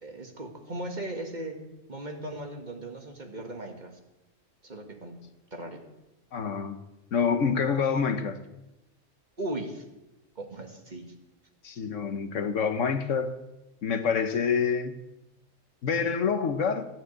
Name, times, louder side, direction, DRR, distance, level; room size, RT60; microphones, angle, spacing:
voice 1, 0.0-1.6 1.9-3.9 4.6-5.2 5.5-5.8 9.4-9.8 10.4-11.0, right 1 dB, 35° right, 3 dB, 1.9 m, -37 dB
voice 2, 6.3-6.8 7.1-8.4 11.6-13.3 13.8-14.9 15.8-16.9, left 6 dB, 70° left, 9 dB, 1.3 m, -27 dB
14.5 x 9.0 x 8.2 m, 0.98 s
omnidirectional pair, 1.4 m